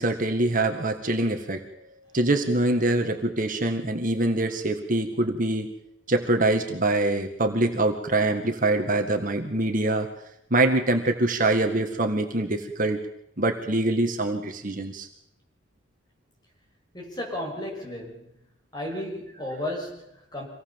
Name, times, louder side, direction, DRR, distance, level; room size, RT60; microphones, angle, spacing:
voice 1, 0.0-1.6 2.1-5.7 6.1-10.1 10.5-13.0 13.4-15.1, right 2 dB, 40° right, 5 dB, 2.0 m, -24 dB
voice 2, 16.9-18.3 18.7-20.5, left 1 dB, 20° left, 0 dB, 6.6 m, -34 dB
26.0 x 18.5 x 7.5 m, 0.77 s
head